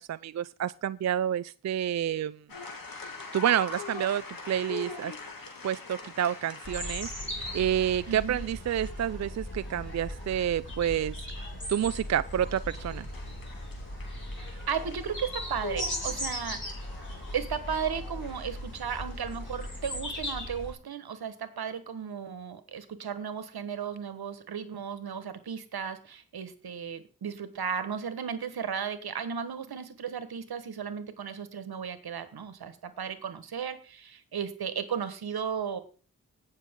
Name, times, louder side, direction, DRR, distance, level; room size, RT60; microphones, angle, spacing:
voice 1, 0.0-2.4 3.3-5.1 5.6-11.2 11.7-13.1, right 10 dB, 50° right, 16 dB, 0.4 m, -29 dB
sound 1, 2.5-20.0, left 4 dB, 65° left, 2.7 m, -45 dB
sound 2, 6.6-20.7, left 1 dB, 30° left, 5.4 m, -38 dB
voice 2, 8.1-8.4 14.5-16.6 17.3-35.8, right 7 dB, 80° right, 11 dB, 1.5 m, -35 dB
18.5 x 6.6 x 3.7 m, 0.36 s
cardioid pair, 50°, 37 cm